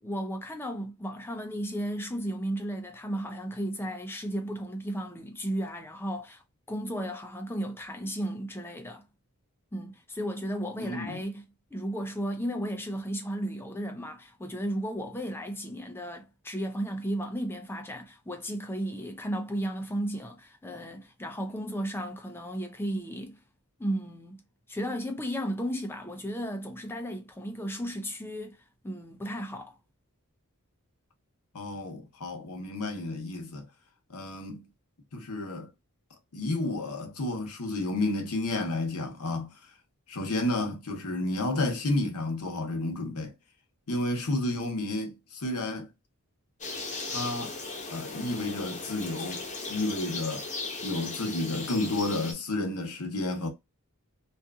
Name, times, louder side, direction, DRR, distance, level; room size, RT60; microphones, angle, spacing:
voice 1, 0.0-6.4 6.7-9.0 9.7-11.4 11.7-23.4 23.8-24.4 24.7-28.6 28.8-29.7, equal, 10° left, 0.5 m, -34 dB
voice 2, 10.8-11.2 31.5-33.7 34.1-34.6 35.1-35.7 36.3-39.5 40.1-43.3 43.9-45.9 47.1-47.6 47.9-50.5 50.8-53.5, left 2 dB, 85° left, 0.8 m, -31 dB
sound 1, 46.6-52.3, left 3 dB, 35° left, 0.8 m, -37 dB
2.7 x 2.4 x 2.3 m
head